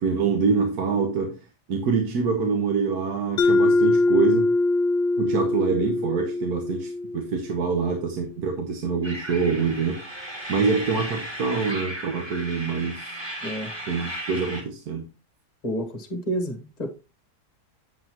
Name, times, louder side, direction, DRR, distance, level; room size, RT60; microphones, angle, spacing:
voice 1, 0.0-4.5 5.2-13.1 13.9-15.0, right 5 dB, 70° right, 1.5 m, -25 dB
Mallet percussion, 3.4-7.9, left 2 dB, 75° left, 0.6 m, -23 dB
sound 1, 9.0-14.6, right 1 dB, 15° right, 1.9 m, -35 dB
voice 2, 15.6-16.9, right 1 dB, 25° left, 1.3 m, -29 dB
7.8 x 7.7 x 2.9 m
omnidirectional pair, 1.7 m